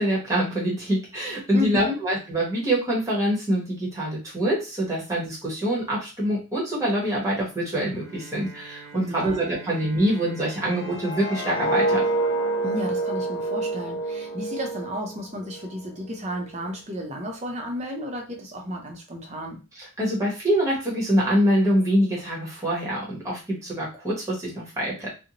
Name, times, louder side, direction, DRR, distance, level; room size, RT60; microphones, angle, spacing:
voice 1, 0.0-12.0 19.8-25.1, right 1 dB, 15° right, -5 dB, 0.9 m, -25 dB
voice 2, 1.5-2.0 9.0-9.4 12.6-19.6, left 1 dB, 30° right, 2 dB, 0.5 m, -32 dB
Bowed string instrument, 7.9-12.8, right 4 dB, 75° right, 0.6 m, -47 dB
sound 1, 10.7-15.7 16.1-16.4, right 2 dB, 65° left, 0.7 m, -27 dB
2.5 x 2.1 x 2.8 m, 0.31 s
head